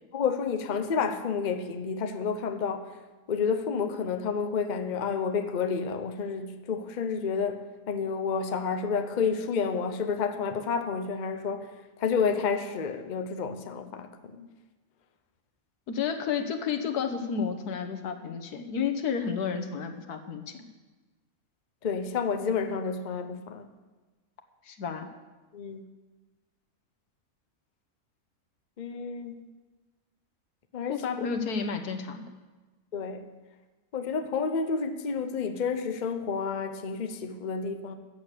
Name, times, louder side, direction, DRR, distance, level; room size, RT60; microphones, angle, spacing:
voice 1, 0.1-2.9 3.3-11.7 12.0-14.5 21.8-23.7 25.5-25.8 28.8-29.4 30.7-31.3 32.9-33.3 33.9-37.9, left 5 dB, 40° left, 0.8 m, -30 dB
voice 2, 15.9-20.7 24.7-25.1 30.9-32.2, left 6 dB, 85° left, 1.6 m, -31 dB
14.0 x 8.5 x 6.7 m
omnidirectional pair, 1.6 m